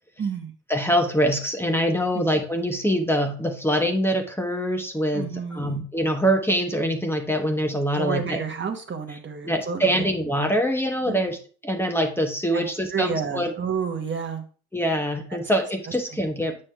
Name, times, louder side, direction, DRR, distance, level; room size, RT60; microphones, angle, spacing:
voice 1, 0.2-0.5 2.1-2.4 5.1-5.8 7.9-10.0 11.1-11.2 12.5-12.6 12.9-14.4 15.3-15.4 16.1-16.2, right 6 dB, 40° right, 5 dB, 1.0 m, -30 dB
voice 2, 0.7-8.4 9.4-11.4 11.6-13.5 14.7-16.6, equal, 10° left, 4 dB, 1.0 m, -24 dB
7.5 x 6.1 x 2.3 m, 0.40 s
cardioid pair, 90°, 30 cm